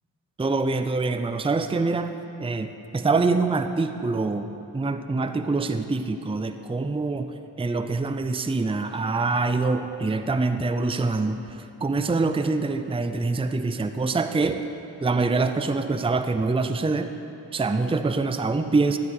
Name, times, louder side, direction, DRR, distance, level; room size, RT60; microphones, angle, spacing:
voice 1, 0.4-2.1 2.4-14.6 15.0-17.1 17.5-19.0, right 3 dB, 15° right, 8 dB, 0.5 m, -25 dB
13.5 x 5.3 x 7.0 m, 2.8 s
cardioid pair, 50°, 45 cm